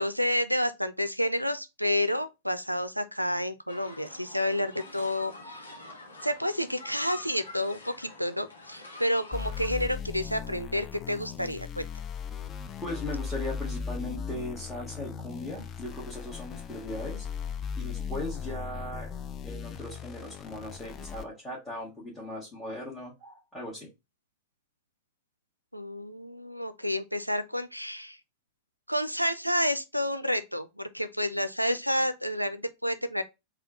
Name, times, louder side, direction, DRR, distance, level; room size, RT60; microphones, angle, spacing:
voice 1, 0.0-5.6 6.2-11.9 25.7-28.2 28.9-33.2, left 1 dB, 90° right, 0.3 m, -30 dB
sound 1, 3.7-9.7, left 2 dB, 75° left, 0.9 m, -46 dB
sound 2, 9.3-21.2, left 6 dB, 30° left, 0.4 m, -37 dB
voice 2, 12.8-17.3 17.7-19.1 19.4-23.9, left 1 dB, 5° left, 1.6 m, -38 dB
3.6 x 2.3 x 3.7 m
figure-of-eight pair, 90°, 0 cm